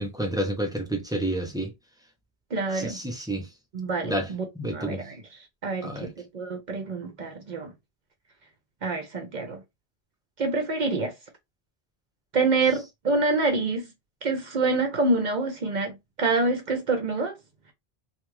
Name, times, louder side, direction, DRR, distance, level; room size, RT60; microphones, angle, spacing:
voice 1, 0.0-1.7 2.7-3.5 4.0-5.0 5.8-6.1, right 1 dB, 5° right, 0.4 m, -30 dB
voice 2, 2.5-3.0 3.7-5.2 5.6-7.7 8.8-9.6 10.4-11.1 12.3-13.9 14.2-15.9 16.2-17.3, right 3 dB, 55° right, 0.6 m, -26 dB
2.5 x 2.3 x 3.0 m
omnidirectional pair, 1.0 m